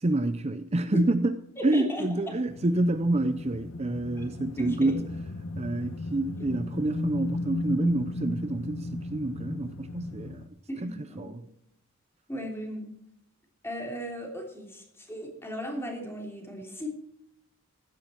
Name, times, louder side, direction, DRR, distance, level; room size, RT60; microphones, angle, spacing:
voice 1, 0.0-1.3 1.6-5.0 5.6-10.4 10.8-11.4, right 2 dB, 30° right, 0.6 m, -28 dB
voice 2, 1.6-2.4 4.6-5.1 10.7-11.5 12.3-12.9 13.6-16.9, equal, 10° left, 3.4 m, -36 dB
sound 1, 2.5-10.5, left 2 dB, 75° left, 1.0 m, -35 dB
15.5 x 12.0 x 4.5 m
head